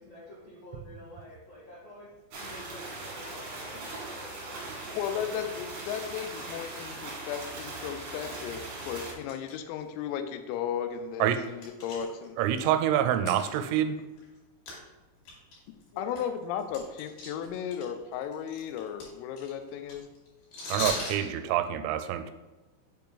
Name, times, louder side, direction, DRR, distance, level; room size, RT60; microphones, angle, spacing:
voice 1, 0.0-4.9 15.9-16.3, left 1 dB, 70° left, -10 dB, 1.5 m, -49 dB
sound 1, 2.3-9.1, right 2 dB, 70° right, 1.8 m, -40 dB
voice 2, 5.0-12.4 16.0-20.1, left 8 dB, 90° left, 9 dB, 3.3 m, -35 dB
sound 2, 5.5-5.6 6.0-6.3 6.7-6.8 7.3-7.4 8.2-9.5 9.8-9.9 10.5-10.6 11.0-12.6 13.2-14.4 14.7-14.8 15.2-17.8 18.1-21.3, left 2 dB, 55° left, 3.2 m, -39 dB
voice 3, 12.4-14.0 20.7-22.3, right 10 dB, 85° right, 8 dB, 3.2 m, -26 dB
7.2 x 4.6 x 3.9 m, 1.2 s
omnidirectional pair, 5.9 m